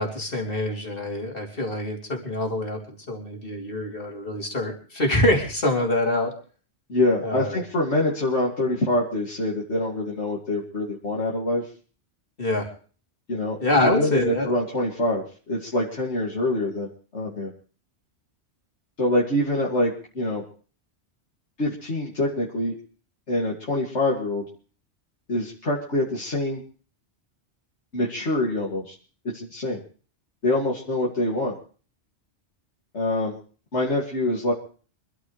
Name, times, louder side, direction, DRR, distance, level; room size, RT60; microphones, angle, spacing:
voice 1, 0.0-2.8 3.1-6.3 7.2-7.6 12.4-12.7 13.6-14.5, left 1 dB, 55° left, 1 dB, 3.5 m, -25 dB
voice 2, 6.9-11.7 13.3-13.6 13.8-17.5 19.0-20.4 21.6-22.7 23.3-24.5 25.3-26.6 27.9-28.9 29.3-29.8 30.4-31.5 32.9-33.3 33.7-34.5, left 1 dB, 80° left, -4 dB, 2.7 m, -25 dB
25.5 x 13.0 x 3.3 m, 0.40 s
omnidirectional pair, 1.2 m